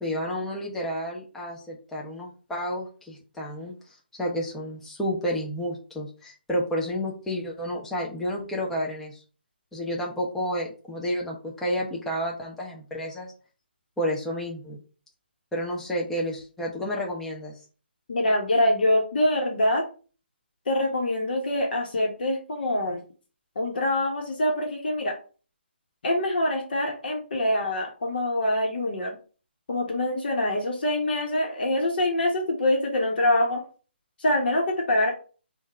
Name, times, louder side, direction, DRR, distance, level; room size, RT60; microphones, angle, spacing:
voice 1, 0.0-9.2 9.7-13.3 14.0-14.8 15.5-17.6, equal, 5° left, -2 dB, 0.7 m, -31 dB
voice 2, 18.1-19.8 20.7-23.0 23.5-25.1 26.0-29.2 29.7-33.6 34.2-35.1, left 1 dB, 55° left, 1 dB, 1.2 m, -25 dB
3.7 x 2.5 x 4.2 m, 0.37 s
figure-of-eight pair, 150°, 6 cm